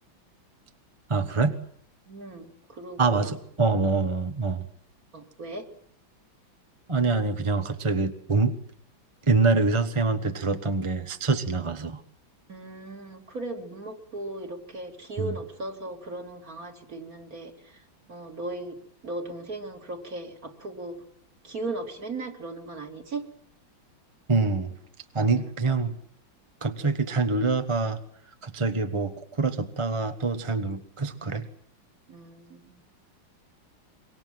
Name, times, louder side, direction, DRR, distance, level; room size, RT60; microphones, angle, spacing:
voice 1, 1.1-1.6 3.0-4.7 6.9-8.6 9.3-12.0 15.2-15.4 24.3-24.7 25.1-26.0 26.6-28.0 28.4-31.4, right 4 dB, 20° right, 8 dB, 1.0 m, -25 dB
voice 2, 2.1-3.3 5.1-5.6 12.5-17.5 18.1-18.8 19.0-21.0 21.4-23.2 25.2-25.5 32.1-32.7, right 2 dB, 45° right, 4 dB, 3.4 m, -37 dB
25.5 x 23.5 x 7.7 m, 0.63 s
omnidirectional pair, 2.2 m